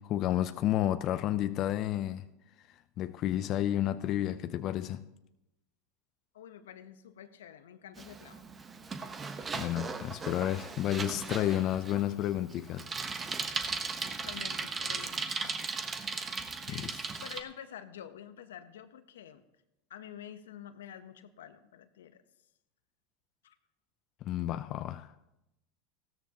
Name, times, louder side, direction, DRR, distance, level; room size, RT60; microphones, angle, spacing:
voice 1, 0.0-2.3 3.0-5.0 9.5-12.9 16.7-17.0 24.2-25.1, left 12 dB, 50° left, 0.5 m, -31 dB
voice 2, 6.3-8.5 14.0-15.6 16.7-19.4 19.9-22.2 23.4-23.6, left 9 dB, 85° left, 0.9 m, -48 dB
Bicycle, 8.0-17.4, right 4 dB, 25° right, 1.1 m, -37 dB
16.0 x 13.0 x 2.9 m
hypercardioid pair, 100°, 0 cm